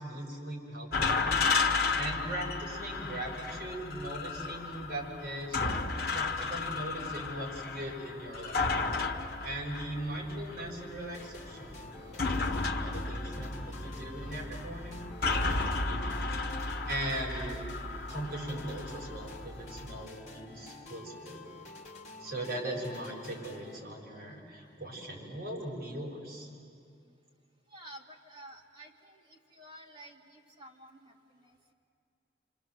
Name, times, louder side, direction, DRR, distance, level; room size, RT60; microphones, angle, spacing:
voice 1, 0.0-5.6 6.1-8.7 9.4-16.2 16.9-17.7 18.1-21.4 22.2-26.5, right 1 dB, 55° right, -3 dB, 6.9 m, -40 dB
sound 1, 0.9-20.0, left 3 dB, 55° left, 1.4 m, -33 dB
sound 2, 11.1-23.8, left 2 dB, 40° left, 2.1 m, -49 dB
voice 2, 27.7-31.6, right 1 dB, 25° right, -2 dB, 2.4 m, -52 dB
27.0 x 27.0 x 7.9 m, 2.3 s
head